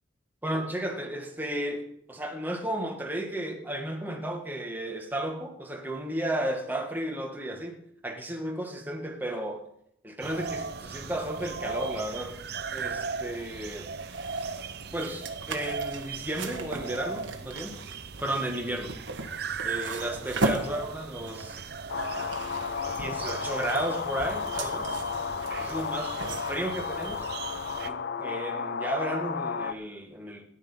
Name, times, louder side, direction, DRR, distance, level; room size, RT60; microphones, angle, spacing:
voice 1, 0.4-7.8 8.0-9.6 10.0-12.4 12.7-13.9 14.9-17.8 18.2-18.9 19.6-21.6 23.0-25.0 25.6-26.2 26.5-27.3 27.8-30.5, right 1 dB, 10° right, 0 dB, 1.8 m, -33 dB
sound 1, 10.2-27.9, right 5 dB, 55° right, 0.7 m, -38 dB
sound 2, 13.5-27.8, right 2 dB, 75° right, 1.6 m, -38 dB
sound 3, 21.9-29.7, left 6 dB, 60° left, 0.5 m, -33 dB
13.5 x 10.5 x 5.7 m, 0.75 s
head